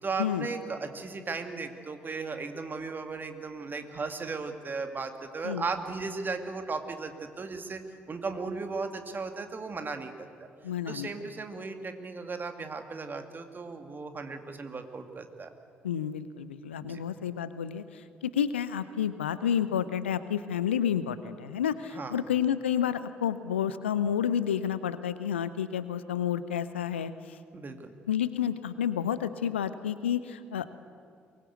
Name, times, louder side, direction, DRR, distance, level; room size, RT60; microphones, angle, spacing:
voice 1, 0.0-7.8 8.1-10.5 10.9-15.5 16.8-17.0 21.9-22.2 27.5-28.0, right 4 dB, 30° right, 7 dB, 2.3 m, -36 dB
voice 2, 10.6-11.1 15.8-27.4 28.1-30.7, left 9 dB, 80° left, 14 dB, 0.7 m, -30 dB
23.0 x 20.5 x 8.3 m, 2.3 s
figure-of-eight pair, 45°, 6 cm